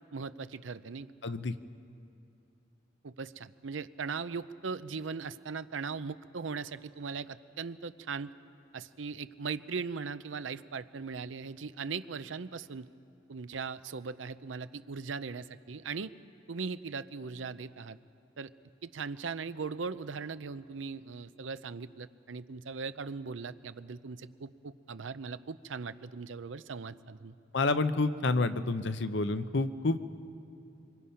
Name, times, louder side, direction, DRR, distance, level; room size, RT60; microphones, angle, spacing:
voice 1, 0.1-1.1 3.0-8.3 8.7-12.9 13.3-16.1 16.5-18.0 18.4-18.5 18.8-27.3, right 5 dB, 80° right, 13 dB, 0.6 m, -39 dB
voice 2, 1.2-1.5 27.5-30.0, left 3 dB, 70° left, 11 dB, 0.8 m, -29 dB
25.0 x 25.0 x 5.7 m, 2.6 s
head